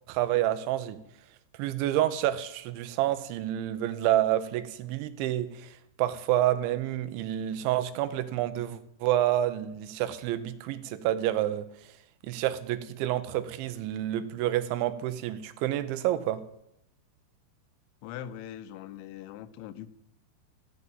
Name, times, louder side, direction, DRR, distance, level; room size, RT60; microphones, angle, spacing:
voice 1, 0.1-1.0 1.6-11.7 12.2-16.4, right 13 dB, 85° right, 13 dB, 3.2 m, -28 dB
voice 2, 18.0-19.9, left 11 dB, 85° left, 12 dB, 3.2 m, -41 dB
15.0 x 8.3 x 8.9 m, 0.78 s
omnidirectional pair, 5.3 m